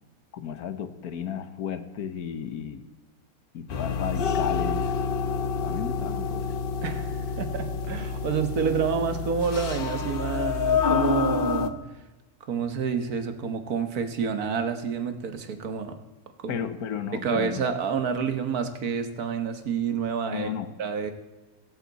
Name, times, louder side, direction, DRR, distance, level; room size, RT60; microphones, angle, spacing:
voice 1, 0.3-2.9 3.5-5.0 5.6-6.5 16.5-17.6 20.3-20.8, left 8 dB, 80° left, 11 dB, 1.5 m, -34 dB
sound 1, 3.7-11.7, left 5 dB, 45° left, 0.8 m, -28 dB
voice 2, 6.8-11.8 12.5-16.0 16.4-16.6 17.1-20.5 20.8-21.1, right 6 dB, 80° right, 8 dB, 1.7 m, -28 dB
16.5 x 15.0 x 4.1 m, 1.1 s
omnidirectional pair, 1.6 m